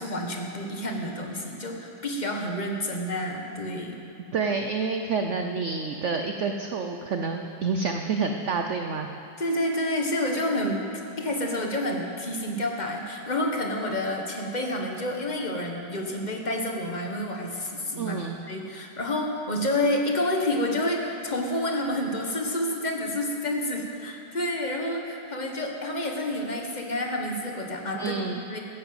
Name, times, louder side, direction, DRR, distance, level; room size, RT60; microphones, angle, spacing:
voice 1, 0.0-4.0 9.4-10.9 11.2-28.6, left 1 dB, 25° left, 1 dB, 1.5 m, -29 dB
voice 2, 4.3-9.1 18.0-18.4 27.9-28.4, right 4 dB, 60° right, 5 dB, 0.8 m, -28 dB
15.5 x 9.9 x 7.9 m, 2.8 s
omnidirectional pair, 1.9 m